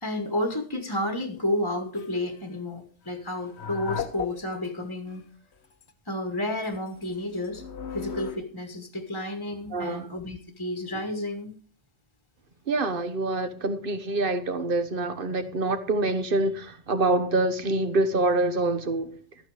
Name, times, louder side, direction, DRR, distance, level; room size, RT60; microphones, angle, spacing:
voice 1, 0.0-5.2 6.1-7.6 7.9-11.5, left 1 dB, 20° left, 1.3 m, -31 dB
sound 1, 1.9-2.2 3.3-4.7 5.1-5.2 5.6-5.9 6.6-8.4, left 7 dB, 65° left, 1.3 m, -36 dB
voice 2, 9.7-10.1 12.7-19.1, right 2 dB, 50° right, 1.3 m, -26 dB
13.0 x 9.1 x 4.9 m
omnidirectional pair, 1.2 m